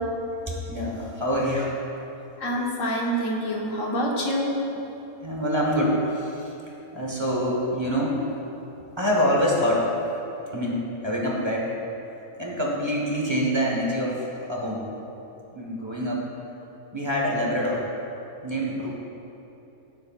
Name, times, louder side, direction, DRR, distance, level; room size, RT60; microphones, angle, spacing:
voice 1, 0.5-1.7 5.2-6.5 6.9-8.3 9.0-9.9 10.5-11.7 12.4-14.9 15.5-16.3 16.9-17.9 18.4-18.9, equal, 20° right, -3 dB, 1.3 m, -25 dB
voice 2, 2.4-4.6, equal, 65° left, -2 dB, 1.7 m, -26 dB
15.5 x 7.8 x 2.4 m, 3.0 s
omnidirectional pair, 1.5 m